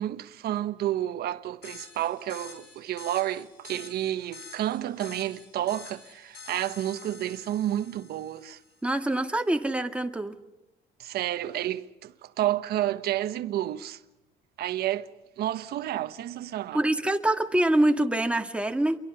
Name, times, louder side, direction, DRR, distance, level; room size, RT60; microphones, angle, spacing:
voice 1, 0.0-8.6 11.0-14.0 14.6-15.1 15.4-16.8, right 13 dB, 70° right, 1.3 m, -30 dB
sound 1, 1.6-8.8, left 4 dB, 70° left, 5.5 m, -48 dB
voice 2, 8.8-10.4 16.7-19.0, right 1 dB, 5° right, 2.1 m, -25 dB
28.5 x 23.5 x 5.7 m
cardioid pair, 110°, 17 cm